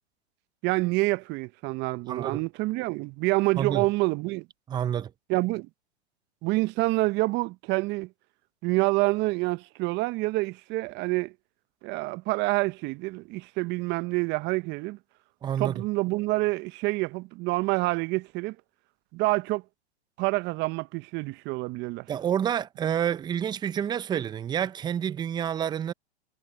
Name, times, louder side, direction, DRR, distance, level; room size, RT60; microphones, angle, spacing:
voice 1, 0.6-4.5 5.3-5.7 6.4-8.1 8.6-11.3 11.8-15.0 15.6-18.6 19.1-19.6 20.2-22.1, right 23 dB, 30° right, 0.9 m, -27 dB
voice 2, 2.1-2.4 3.6-3.9 4.7-5.1 15.4-15.8 22.1-25.9, right 9 dB, 15° right, 0.6 m, -28 dB
hypercardioid pair, 115°, 34 cm